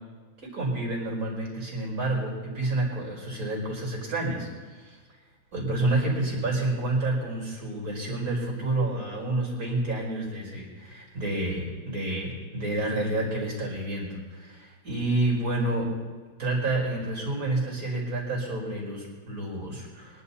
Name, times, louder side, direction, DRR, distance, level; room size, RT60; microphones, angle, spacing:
voice 1, 0.4-4.5 4.8-5.0 5.5-15.9 16.4-20.2, right 2 dB, 45° right, -2 dB, 5.2 m, -29 dB
24.0 x 11.5 x 4.2 m, 1.5 s
omnidirectional pair, 2.1 m